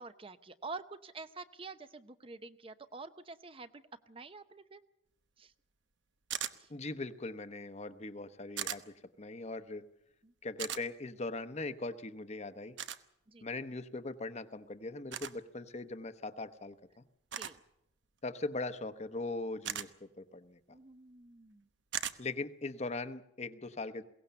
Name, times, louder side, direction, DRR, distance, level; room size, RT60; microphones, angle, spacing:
voice 1, 0.0-4.8 5.4-5.5 6.6-6.7 10.2-10.3 13.3-13.5 17.3-17.6 20.7-21.7, right 3 dB, 30° right, 11 dB, 0.7 m, -48 dB
sound 1, 6.3-6.6 8.6-8.8 10.6-10.8 12.8-13.0 15.1-15.3 17.3-17.6 19.6-19.9 21.9-22.2, right 10 dB, 75° right, 1.0 m, -37 dB
voice 2, 6.7-9.8 10.4-12.8 13.4-17.0 18.2-20.8 22.2-24.0, left 2 dB, 35° left, 11 dB, 0.9 m, -40 dB
22.0 x 17.5 x 6.9 m, 0.81 s
head